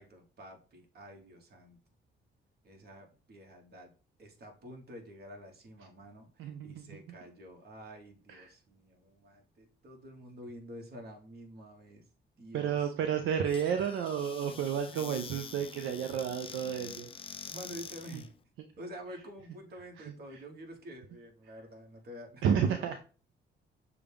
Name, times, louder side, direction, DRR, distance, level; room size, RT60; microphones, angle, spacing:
voice 1, 0.0-1.8 2.6-3.9 4.2-12.0 12.4-12.9 17.5-18.3 18.8-22.4 22.7-23.0, equal, 55° right, 2 dB, 1.4 m, -49 dB
voice 2, 6.4-7.0 8.3-8.5 12.5-17.1 20.0-20.4 22.4-23.0, right 8 dB, 80° right, 6 dB, 0.5 m, -32 dB
Squeak / Cupboard open or close, 13.4-18.3, left 6 dB, 25° left, 0.4 m, -46 dB
6.5 x 2.3 x 3.4 m, 0.36 s
cardioid pair, 90°, 20 cm